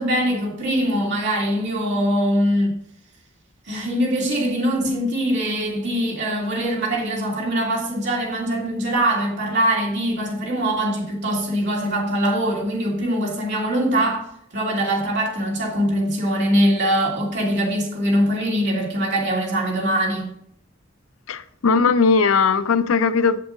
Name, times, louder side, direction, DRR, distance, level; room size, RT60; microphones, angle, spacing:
voice 1, 0.0-2.8 3.6-14.2 14.5-20.3, equal, 60° right, 2.9 m, -22 dB
voice 2, 21.3-23.4, left 5 dB, 75° left, 0.5 m, -18 dB
7.6 x 7.1 x 3.9 m
head